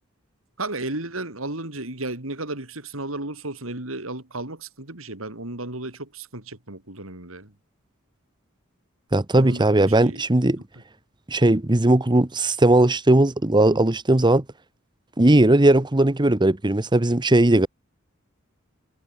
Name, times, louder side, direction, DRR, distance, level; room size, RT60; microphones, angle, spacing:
voice 1, 0.6-7.5 9.3-10.2, right 2 dB, 80° right, 4.6 m, -34 dB
voice 2, 9.1-10.6 11.3-14.4 15.2-17.7, right 1 dB, 20° right, 1.0 m, -18 dB
head